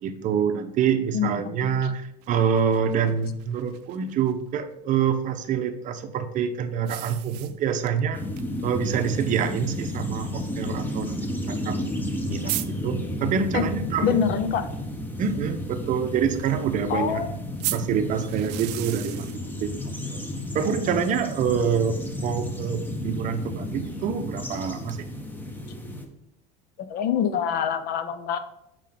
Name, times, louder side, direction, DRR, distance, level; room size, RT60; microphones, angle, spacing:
voice 1, 0.0-8.3 8.6-11.2 11.5-11.9 12.3-14.2 15.2-17.2 17.7-19.3 19.6-20.2 20.5-25.1, right 7 dB, 40° right, 8 dB, 0.7 m, -26 dB
voice 2, 1.1-1.8 13.5-13.6 14.0-14.7 16.9-17.3 26.8-28.4, left 8 dB, 50° left, 12 dB, 0.7 m, -25 dB
sound 1, 2.2-4.3 6.8-8.0 8.4-8.5 8.8-8.9 9.8-9.9 11.7-11.8 12.0-12.1 12.5-12.7 17.6-19.4, right 17 dB, 75° right, 0.5 m, -34 dB
sound 2, 8.1-26.1, left 1 dB, 10° left, 0.9 m, -32 dB
7.4 x 4.9 x 3.7 m, 0.81 s
supercardioid pair, 120°, 20 cm